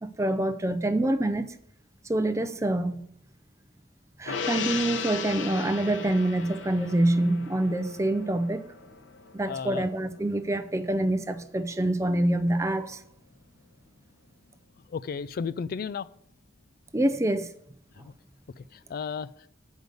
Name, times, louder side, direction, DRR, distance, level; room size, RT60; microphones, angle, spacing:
voice 1, 0.0-1.6 2.1-3.0 4.2-8.6 9.3-13.0 16.9-17.5, right 1 dB, 15° right, 0.5 m, -26 dB
Gong, 4.3-10.9 11.2-11.4, left 5 dB, 80° left, 0.7 m, -37 dB
voice 2, 9.5-9.8 14.9-16.1 18.0-18.1 18.9-19.3, left 6 dB, 50° left, 0.3 m, -33 dB
7.9 x 5.2 x 6.5 m
head